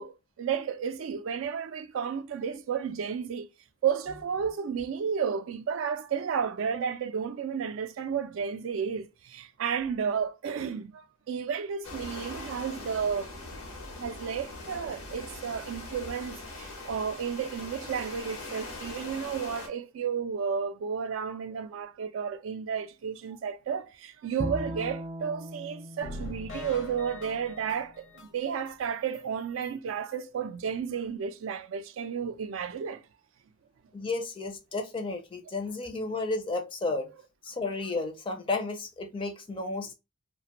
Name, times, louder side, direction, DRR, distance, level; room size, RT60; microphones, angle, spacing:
voice 1, 0.0-3.5 3.8-13.6 14.0-33.0, right 7 dB, 75° right, 0.3 m, -32 dB
sound 1, 11.8-19.7, left 2 dB, 90° left, 0.9 m, -41 dB
Bowed string instrument, 24.4-27.7, equal, 40° right, 0.6 m, -39 dB
sound 2, 26.0-28.7 29.1-29.2 29.6-29.7 30.1-30.2, left 2 dB, 65° left, 0.6 m, -42 dB
voice 2, 33.9-37.1 37.4-39.9, left 3 dB, 25° left, 0.4 m, -32 dB
2.4 x 2.1 x 2.8 m
head